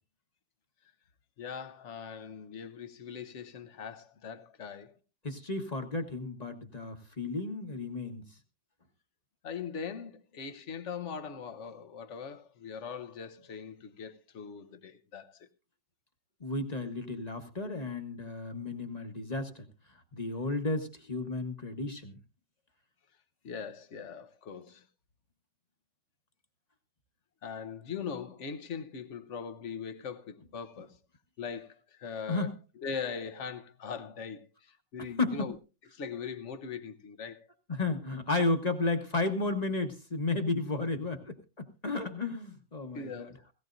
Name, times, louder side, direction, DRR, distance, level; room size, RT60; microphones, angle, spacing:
voice 1, 1.4-4.9 9.4-15.5 23.4-24.8 27.4-31.0 31.4-32.5 32.8-35.6 35.9-37.5 42.9-43.4, left 6 dB, 50° left, 1.0 m, -41 dB
voice 2, 5.2-8.2 16.4-19.7 20.1-22.2 32.3-32.5 35.2-35.5 37.7-43.3, left 3 dB, 25° left, 1.1 m, -33 dB
17.0 x 17.0 x 2.6 m
omnidirectional pair, 1.9 m